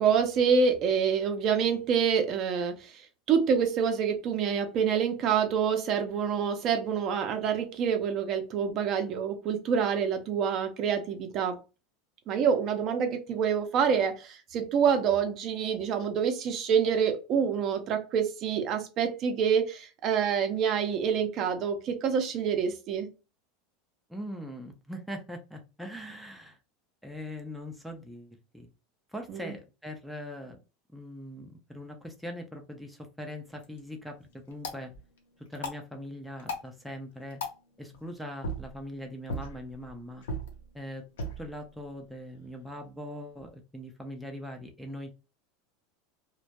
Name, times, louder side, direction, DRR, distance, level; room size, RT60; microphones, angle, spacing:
voice 1, 0.0-3.0 3.3-11.6 12.3-23.1 29.3-29.5, right 7 dB, 45° right, 0.5 m, -27 dB
voice 2, 24.1-26.6 27.0-28.7 29.1-30.6 30.9-34.9 35.5-37.4 37.8-40.2 40.7-41.1 41.4-45.1, equal, ahead, 0.4 m, -41 dB
sound 1, 33.4-43.5, equal, 85° left, 0.7 m, -42 dB
2.2 x 2.1 x 2.7 m
supercardioid pair, 120°, 0 cm